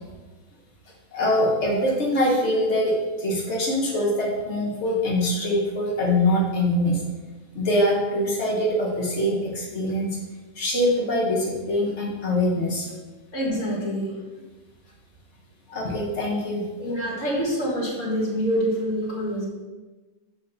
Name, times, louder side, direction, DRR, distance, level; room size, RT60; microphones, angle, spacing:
voice 1, 1.1-7.0 7.5-10.2 10.5-12.9 15.7-16.6, left 1 dB, 85° left, -3 dB, 0.6 m, -23 dB
voice 2, 13.3-14.2 16.8-19.5, equal, 35° left, -3 dB, 1.3 m, -26 dB
7.1 x 5.2 x 5.4 m, 1.3 s
omnidirectional pair, 3.5 m